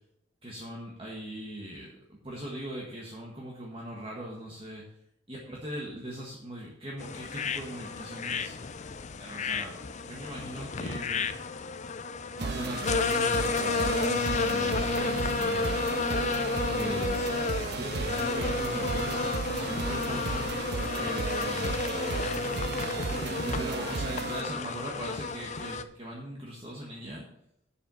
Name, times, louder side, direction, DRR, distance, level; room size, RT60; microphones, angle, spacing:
voice 1, 0.4-4.8 5.3-8.6 9.2-11.3 12.4-16.0 16.7-19.2 19.5-21.8 23.1-27.3, right 1 dB, 30° right, -3 dB, 1.5 m, -40 dB
sound 1, 7.0-25.8, left 4 dB, 40° left, 0.5 m, -31 dB
sound 2, 12.4-24.4, right 4 dB, 60° right, 0.5 m, -34 dB
sound 3, 14.6-20.6, equal, 5° right, 1.0 m, -47 dB
7.6 x 6.9 x 7.0 m, 0.77 s
head